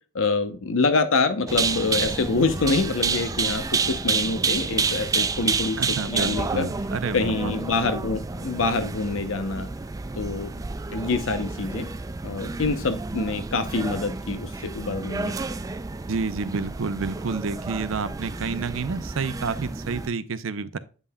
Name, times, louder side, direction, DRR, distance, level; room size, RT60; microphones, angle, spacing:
voice 1, 0.1-5.8 6.1-6.7 7.1-9.7 10.2-10.5 10.9-11.9 12.2-15.3, left 3 dB, 70° left, 0.7 m, -26 dB
sound 1, 1.5-20.1, right 4 dB, 15° right, 0.3 m, -29 dB
voice 2, 5.8-7.5 16.1-20.8, right 4 dB, 70° right, 0.6 m, -29 dB
8.2 x 5.5 x 2.2 m
head